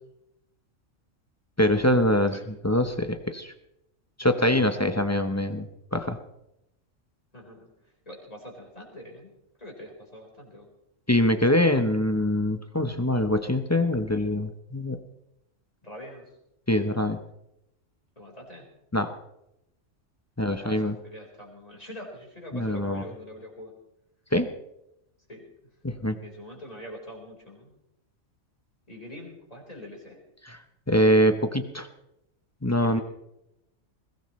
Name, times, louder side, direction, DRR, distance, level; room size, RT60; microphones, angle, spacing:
voice 1, 1.6-3.5 4.2-6.2 11.1-15.0 16.7-17.2 18.9-19.1 20.4-21.0 22.5-23.0 24.3-24.5 25.8-26.2 30.5-30.6 30.9-31.9 32.6-33.0, left 1 dB, 15° left, 8 dB, 0.8 m, -24 dB
voice 2, 7.3-9.3 9.6-10.7 15.8-16.3 18.2-18.7 20.5-23.7 25.3-25.5 26.2-27.8 28.9-30.2 32.8-33.0, equal, 30° left, -1 dB, 4.6 m, -44 dB
21.0 x 17.5 x 3.2 m, 0.85 s
omnidirectional pair, 1.3 m